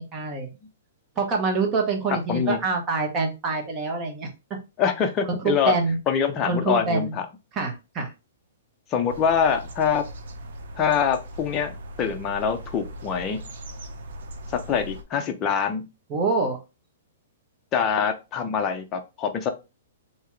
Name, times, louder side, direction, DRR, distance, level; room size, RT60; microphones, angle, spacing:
voice 1, 0.1-0.5 1.2-4.3 5.7-6.0 6.4-7.2 7.5-8.1 16.1-16.6, right 3 dB, 20° right, 1 dB, 1.0 m, -25 dB
voice 2, 2.3-2.6 4.8-5.7 6.1-7.2 8.9-10.0 10.8-13.4 14.7-15.9 17.7-19.5, left 7 dB, 20° left, 4 dB, 0.6 m, -24 dB
sound 1, 9.1-15.0, equal, 70° right, 0.8 m, -39 dB
3.5 x 2.9 x 3.1 m, 0.27 s
hypercardioid pair, 155°, 0 cm